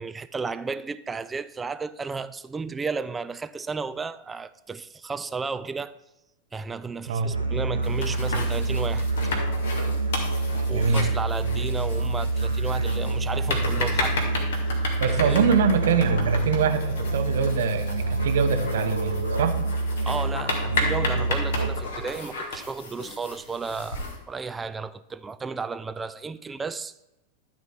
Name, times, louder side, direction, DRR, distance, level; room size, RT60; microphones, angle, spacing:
voice 1, 0.0-5.9 6.5-9.1 10.7-14.2 14.5-14.6 15.1-15.5 20.0-26.9, right 4 dB, 15° right, 0.4 m, -33 dB
Musical instrument, 7.2-22.0, right 2 dB, 85° right, 1.0 m, -27 dB
sound 1, 7.8-24.2, left 2 dB, 55° left, 2.3 m, -34 dB
voice 2, 10.7-11.0 15.0-19.6, right 6 dB, 60° right, 1.0 m, -24 dB
12.5 x 4.2 x 6.0 m
figure-of-eight pair, 90°, 0 cm